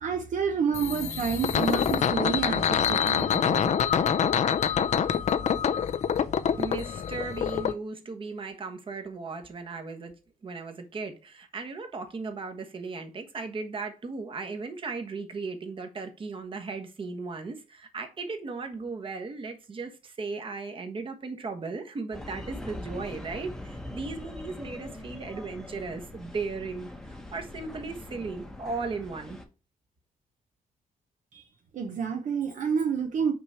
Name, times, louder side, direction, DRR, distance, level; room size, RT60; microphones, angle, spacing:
voice 1, 0.0-3.7 31.3-31.5 31.7-33.3, right 6 dB, 60° right, 0.8 m, -29 dB
sound 1, 0.7-7.7, left 8 dB, 50° left, 0.5 m, -26 dB
voice 2, 6.6-10.1 10.4-29.4, right 4 dB, 35° right, 1.3 m, -36 dB
sound 2, 22.1-29.4, left 1 dB, 5° left, 1.0 m, -42 dB
6.0 x 4.9 x 4.4 m
wide cardioid pair, 140°, 15 cm